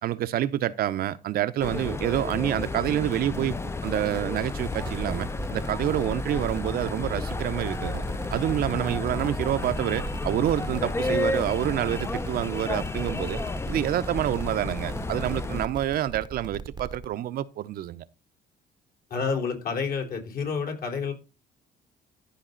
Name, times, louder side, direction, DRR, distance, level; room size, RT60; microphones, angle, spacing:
voice 1, 0.0-8.0 8.3-13.4 13.7-18.0, right 12 dB, 65° right, 0.7 m, -28 dB
sound 1, 1.6-15.7, left 3 dB, 15° left, 0.6 m, -32 dB
sound 2, 4.5-17.1, right 5 dB, 25° right, 0.8 m, -39 dB
voice 2, 19.1-21.1, left 5 dB, 60° left, 3.9 m, -29 dB
14.5 x 5.3 x 3.9 m
cardioid pair, 110°, 17 cm